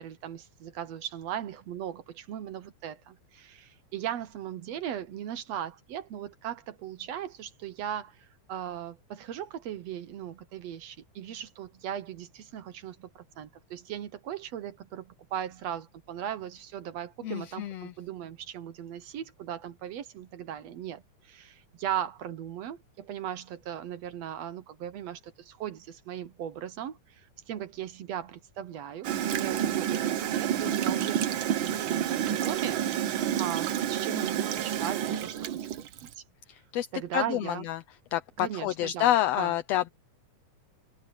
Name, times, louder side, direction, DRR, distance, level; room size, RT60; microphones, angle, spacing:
voice 1, 0.0-35.6 36.2-36.3 36.9-37.7 38.4-39.5, right 10 dB, 65° right, 1.9 m, -38 dB
voice 2, 17.2-17.9 36.5-36.9 37.1-37.8 38.1-39.9, left 13 dB, 70° left, 1.6 m, -28 dB
Gurgling / Toilet flush, 29.0-36.1, right 10 dB, 85° right, 1.1 m, -29 dB
omnidirectional pair, 3.5 m